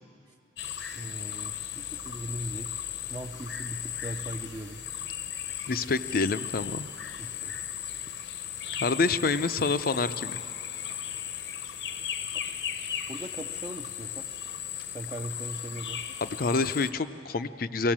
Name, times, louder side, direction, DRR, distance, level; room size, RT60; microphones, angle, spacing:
sound 1, 0.6-16.9, left 9 dB, 70° left, 0.9 m, -36 dB
voice 1, 0.9-2.8 3.1-4.8 7.2-7.5 13.1-14.3 14.9-16.0, right 1 dB, 25° right, 3 dB, 0.5 m, -39 dB
voice 2, 5.7-6.9 8.8-10.4 16.2-17.9, left 3 dB, 50° left, 12 dB, 0.5 m, -27 dB
23.0 x 16.0 x 7.4 m, 2.8 s
head